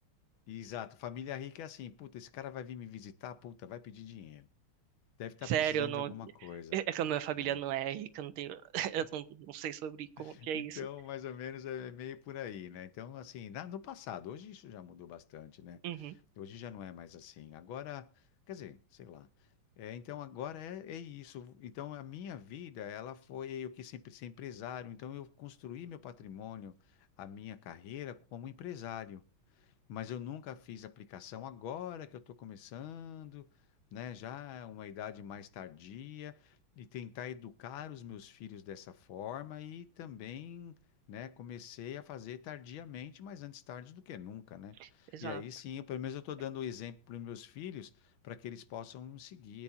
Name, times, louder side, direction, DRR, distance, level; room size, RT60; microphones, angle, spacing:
voice 1, 0.5-4.5 5.2-6.8 7.4-7.6 10.2-15.8 16.4-19.3 19.8-29.2 29.6-33.5 33.9-40.8 41.1-49.6, left 9 dB, 70° left, 1.6 m, -44 dB
voice 2, 5.4-6.1 6.7-10.8 15.8-16.1 44.8-45.4, right 10 dB, 75° right, 1.7 m, -35 dB
23.5 x 8.6 x 2.6 m
omnidirectional pair, 2.4 m